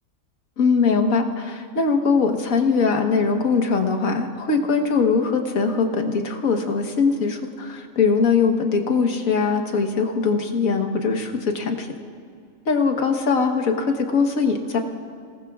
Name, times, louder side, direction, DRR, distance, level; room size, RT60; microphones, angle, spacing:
voice 1, 0.6-11.9 12.7-14.8, left 4 dB, 90° left, 4 dB, 1.7 m, -21 dB
28.5 x 18.5 x 2.4 m, 2.4 s
omnidirectional pair, 1.4 m